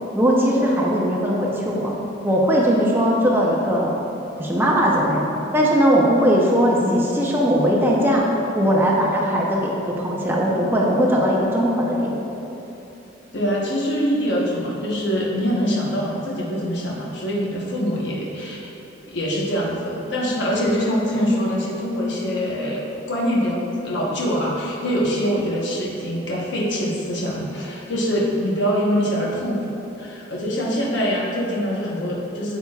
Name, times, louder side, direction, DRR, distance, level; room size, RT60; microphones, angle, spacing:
voice 1, 0.1-2.0 2.2-4.0 4.4-5.2 5.5-8.3 8.5-12.2, equal, 10° right, -3 dB, 0.7 m, -19 dB
voice 2, 13.3-18.6 19.1-32.6, equal, 65° left, -4 dB, 1.1 m, -24 dB
8.4 x 8.2 x 2.4 m, 2.9 s
head